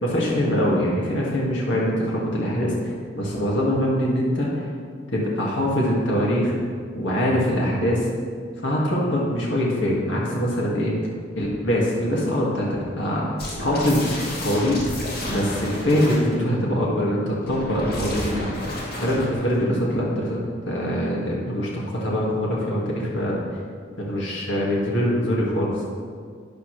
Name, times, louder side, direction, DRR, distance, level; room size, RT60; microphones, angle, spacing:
voice 1, 0.0-4.7 5.1-6.6 6.9-8.0 8.6-10.9 11.4-13.2 13.6-14.1 14.4-14.8 15.3-18.5 19.0-20.4 20.7-23.4 24.0-25.8, equal, 75° left, -4 dB, 2.1 m, -23 dB
sound 1, 13.4-16.3 17.4-19.6, left 1 dB, 55° left, 2.4 m, -31 dB
12.5 x 10.0 x 3.3 m, 2.1 s
head